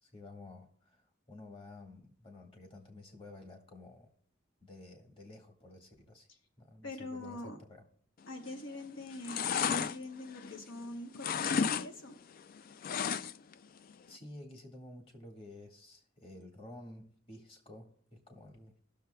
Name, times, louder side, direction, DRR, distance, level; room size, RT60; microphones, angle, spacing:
voice 1, 0.0-4.1 4.6-6.3 6.6-7.8 13.5-13.7 14.1-18.8, left 2 dB, 30° left, 2 dB, 1.6 m, -52 dB
voice 2, 6.8-7.6 8.3-12.1, left 1 dB, 75° left, 4 dB, 1.1 m, -44 dB
sound 1, 8.4-8.8 9.1-10.8 11.1-11.9 12.1-13.5 13.9-14.0, left 7 dB, 50° left, 0.3 m, -33 dB
19.5 x 6.6 x 2.2 m, 0.63 s
head